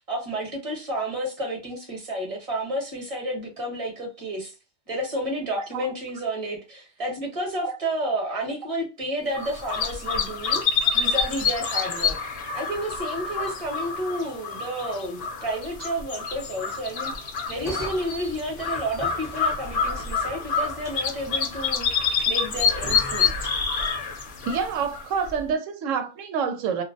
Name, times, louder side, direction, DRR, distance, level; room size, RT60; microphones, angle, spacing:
voice 1, 0.0-4.5 4.9-10.6 10.9-12.1 12.5-17.1 17.5-23.3, right 1 dB, 30° right, 0.9 m, -31 dB
sound 1, 9.3-25.4, left 5 dB, 60° left, 0.7 m, -27 dB
sound 2, 17.5-24.7, right 1 dB, 5° right, 0.5 m, -42 dB
voice 2, 24.4-26.8, right 6 dB, 80° right, 0.9 m, -27 dB
2.4 x 2.0 x 2.6 m
omnidirectional pair, 1.3 m